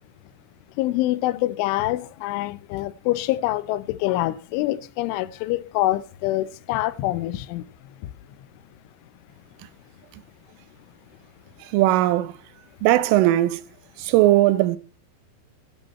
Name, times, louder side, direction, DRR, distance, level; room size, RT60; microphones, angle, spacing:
voice 1, 0.8-7.7, left 16 dB, 80° left, 3.1 m, -25 dB
voice 2, 11.6-12.3 12.8-13.6 14.0-14.8, right 15 dB, 85° right, 3.5 m, -18 dB
16.5 x 11.0 x 4.2 m
omnidirectional pair, 5.6 m